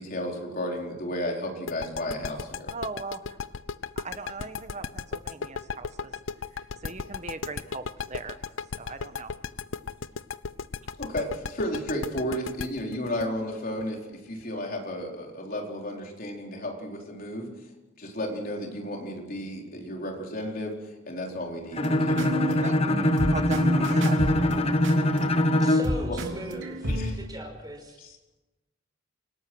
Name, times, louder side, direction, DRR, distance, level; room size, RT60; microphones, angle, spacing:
voice 1, 0.0-2.7 11.0-17.5 18.0-22.7 26.1-26.2 26.9-27.2 28.0-28.1, left 1 dB, 45° left, 0 dB, 4.5 m, -33 dB
sound 1, 1.7-14.4, left 5 dB, 80° left, 0.7 m, -35 dB
voice 2, 2.7-3.4 3.9-6.2 6.8-9.3 22.6-24.2, right 3 dB, 35° right, 9 dB, 1.4 m, -39 dB
Bowed string instrument, 21.7-26.0, left 1 dB, 30° left, 1.2 m, -23 dB
sound 2, 21.8-27.1, right 1 dB, 75° right, 3.1 m, -31 dB
voice 3, 25.5-26.9 27.1-28.0, right 1 dB, 20° right, 2 dB, 5.7 m, -39 dB
29.0 x 18.0 x 6.4 m, 1.0 s
head